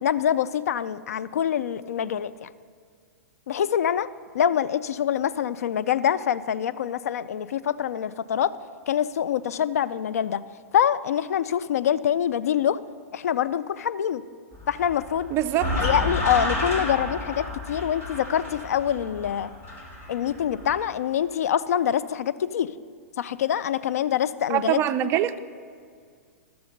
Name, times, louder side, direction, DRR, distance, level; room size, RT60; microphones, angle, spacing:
voice 1, 0.0-2.5 3.5-4.1 4.3-8.5 8.9-10.4 10.7-12.8 13.1-14.2 14.7-15.3 15.8-19.5 20.1-22.7 23.2-24.8, left 9 dB, 70° left, 15 dB, 0.4 m, -25 dB
sound 1, 14.5-20.8, left 1 dB, 30° left, 2.7 m, -31 dB
voice 2, 15.3-15.7 24.5-25.4, right 12 dB, 30° right, 11 dB, 0.5 m, -23 dB
13.5 x 6.9 x 5.2 m, 2.1 s
hypercardioid pair, 120°, 8 cm